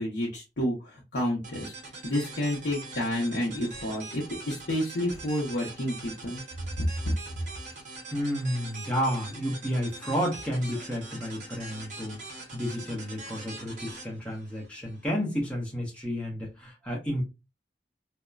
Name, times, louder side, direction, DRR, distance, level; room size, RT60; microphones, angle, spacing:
voice 1, 0.0-1.7 2.0-6.4 6.8-6.9, left 1 dB, 80° left, 0.7 m, -30 dB
sound 1, 1.4-15.1, right 3 dB, 45° right, 0.8 m, -43 dB
voice 2, 8.1-17.2, equal, 5° left, 0.8 m, -31 dB
2.9 x 2.1 x 2.3 m
head